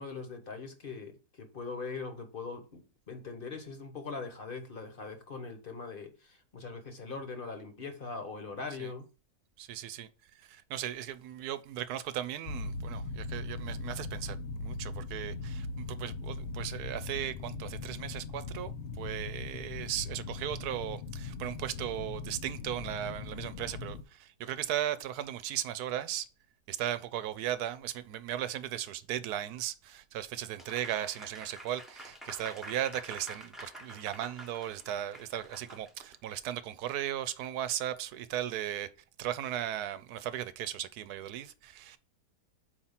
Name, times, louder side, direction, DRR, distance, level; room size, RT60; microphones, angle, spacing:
voice 1, 0.0-9.0, left 4 dB, 40° left, 1.1 m, -41 dB
voice 2, 9.6-10.1 10.3-18.7 19.0-26.3 26.7-38.9 39.2-42.0, right 11 dB, 90° right, 1.1 m, -37 dB
sound 1, 12.5-24.0, left 3 dB, 60° left, 0.8 m, -39 dB
Applause, 30.6-36.1, right 1 dB, ahead, 0.8 m, -48 dB
5.1 x 4.4 x 5.6 m
omnidirectional pair, 1.6 m